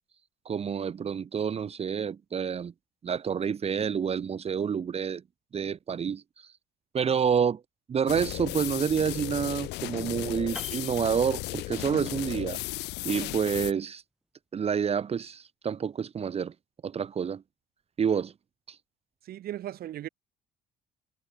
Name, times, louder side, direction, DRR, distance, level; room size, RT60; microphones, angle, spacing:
voice 1, 0.4-2.7 3.0-5.2 5.5-6.5 6.9-7.6 7.9-12.6 13.0-14.0 14.5-16.5 16.8-17.4 18.0-18.3 18.7-18.8, right 7 dB, 35° right, 1.5 m, -28 dB
sound 1, 8.1-13.7, left 21 dB, 90° left, 1.4 m, -35 dB
Piano, 10.6-12.0 12.3-12.5, right 1 dB, 5° right, 2.0 m, -46 dB
voice 2, 19.2-20.1, right 12 dB, 65° right, 2.7 m, -37 dB
cardioid pair, 110°, 17 cm